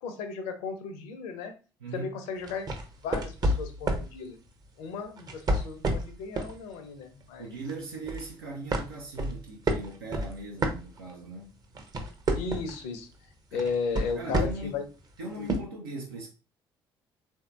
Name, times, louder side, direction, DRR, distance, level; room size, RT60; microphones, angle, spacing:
voice 1, 0.0-1.5 1.9-2.7 3.0-4.4 4.8-7.5 12.3-13.1 13.5-14.8 15.4-15.5, left 5 dB, 60° left, 0.6 m, -35 dB
voice 2, 1.8-2.2 7.4-11.6 13.5-13.6 14.2-14.8 15.2-16.3, right 2 dB, 75° right, 0.5 m, -39 dB
sound 1, 2.4-4.1 5.2-6.6 7.0-7.2 7.7-8.3 8.7-11.3 11.6-12.8 13.6-14.8 15.5-15.6, right 1 dB, 35° right, 0.7 m, -29 dB
3.4 x 2.7 x 2.3 m
figure-of-eight pair, 50°, 12 cm